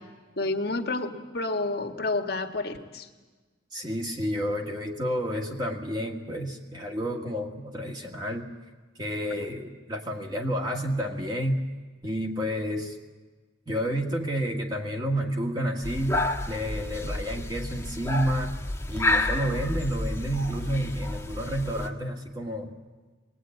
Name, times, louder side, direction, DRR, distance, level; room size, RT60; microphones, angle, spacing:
voice 1, 0.4-3.1, left 2 dB, 55° left, 5 dB, 1.6 m, -29 dB
voice 2, 3.7-8.5 9.0-11.6 12.0-13.0 13.7-18.6 18.9-22.7, equal, 20° right, 1 dB, 1.7 m, -30 dB
sound 1, 15.8-21.9, left 2 dB, 15° left, 1.4 m, -30 dB
22.5 x 20.0 x 9.1 m, 1.3 s
head